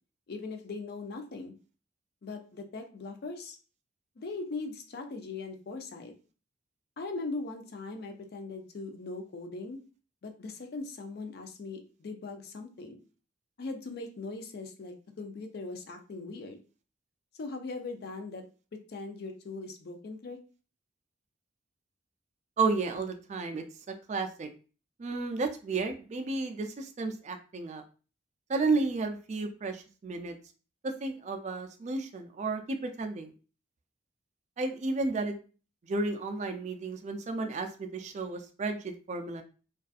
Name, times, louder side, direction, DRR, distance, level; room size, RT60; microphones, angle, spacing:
voice 1, 0.3-1.6 2.2-3.6 4.2-6.1 7.0-9.8 10.2-13.0 13.6-16.6 17.4-18.4 18.7-20.4, left 3 dB, 55° left, 5 dB, 0.4 m, -40 dB
voice 2, 22.6-24.5 25.0-27.8 28.5-30.4 30.8-33.3 34.6-35.4 35.8-39.4, right 3 dB, 35° right, 5 dB, 0.3 m, -32 dB
2.5 x 2.3 x 2.3 m, 0.36 s
head